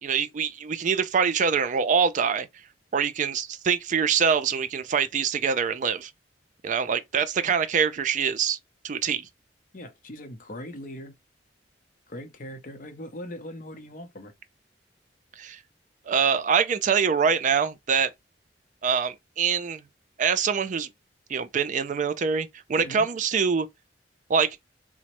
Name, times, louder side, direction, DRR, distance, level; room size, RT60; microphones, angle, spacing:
voice 1, 0.0-2.5 2.9-6.1 6.6-8.6 8.8-9.3 15.4-15.6 16.1-18.1 18.8-19.8 20.2-20.9 21.3-23.7 24.3-24.5, right 6 dB, 45° right, 0.4 m, -24 dB
voice 2, 9.7-11.2 12.1-14.3 22.8-23.0, left 1 dB, 50° left, 0.7 m, -40 dB
3.0 x 2.1 x 2.9 m
head